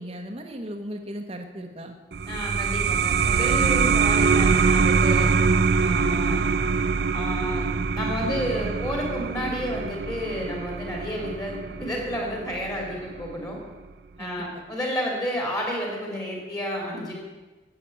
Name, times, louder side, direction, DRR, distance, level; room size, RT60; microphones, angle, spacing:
voice 1, 0.0-2.0 14.2-14.6, equal, 30° right, 3 dB, 1.0 m, -37 dB
sound 1, 2.1-13.3, right 5 dB, 60° right, 0.4 m, -24 dB
voice 2, 2.2-5.3 5.8-6.4 7.1-7.7 7.9-13.6 14.2-17.1, equal, 20° left, -1 dB, 3.0 m, -31 dB
10.0 x 8.3 x 8.4 m, 1.2 s
head